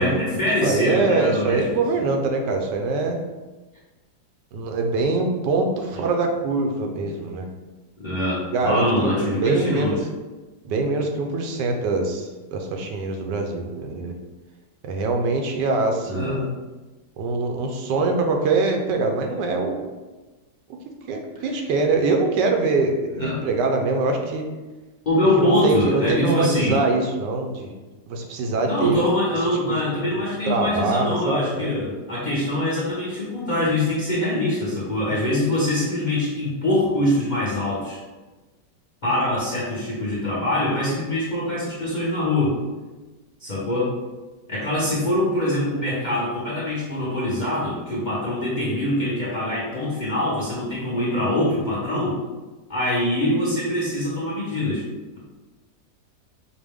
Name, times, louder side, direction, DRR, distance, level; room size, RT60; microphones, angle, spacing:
voice 1, 0.0-1.6 5.9-6.0 8.0-10.0 16.1-16.4 23.1-23.4 25.1-26.8 28.6-38.0 39.0-42.6 43.4-43.9 44.5-52.2 52.7-54.8, left 1 dB, 45° left, -7 dB, 0.6 m, -24 dB
voice 2, 0.6-3.2 4.5-7.5 8.5-10.0 10.6-14.1 14.9-16.5 17.2-19.9 21.1-24.4 25.4-27.7 28.1-29.0 29.7-29.8 30.1-31.8, right 3 dB, 85° right, 3 dB, 1.2 m, -23 dB
4.9 x 2.1 x 3.5 m, 1.2 s
omnidirectional pair, 1.8 m